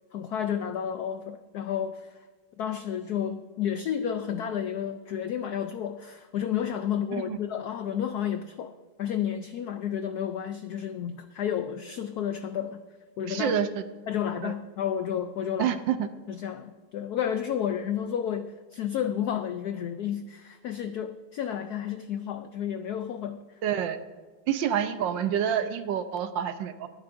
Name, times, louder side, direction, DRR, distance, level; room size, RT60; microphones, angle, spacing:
voice 1, 0.1-2.2 2.6-8.7 9.0-12.8 13.2-13.6 14.1-15.8 16.3-23.6, left 9 dB, 80° left, 9 dB, 0.8 m, -31 dB
voice 2, 13.3-13.8 14.4-14.5 15.6-16.1 23.6-24.0 24.5-26.9, right 9 dB, 75° right, 10 dB, 1.3 m, -27 dB
22.5 x 9.7 x 2.6 m, 1.4 s
omnidirectional pair, 2.3 m